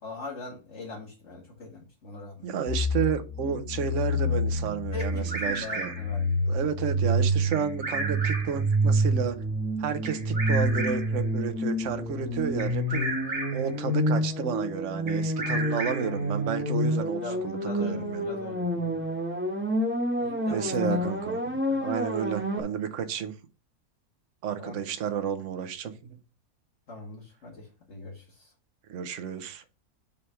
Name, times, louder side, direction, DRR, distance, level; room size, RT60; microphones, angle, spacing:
voice 1, 0.0-2.5 4.9-6.5 16.0-16.3 16.8-19.0 20.2-21.1 21.7-21.9 24.6-24.8 26.9-28.5, left 3 dB, 50° left, -3 dB, 1.7 m, -42 dB
voice 2, 2.4-5.9 6.5-9.4 9.8-13.2 13.5-18.3 20.5-21.4 21.8-23.3 24.4-26.2 28.9-29.6, right 7 dB, 60° right, 9 dB, 1.0 m, -31 dB
sound 1, 2.7-22.6, equal, 10° right, 1.2 m, -28 dB
Bird vocalization bird call bird song, 5.0-6.2 7.5-8.6 10.0-11.2 12.6-13.7 15.1-16.2, right 2 dB, 25° right, 1.1 m, -34 dB
5.5 x 3.2 x 5.6 m, 0.32 s
omnidirectional pair, 1.6 m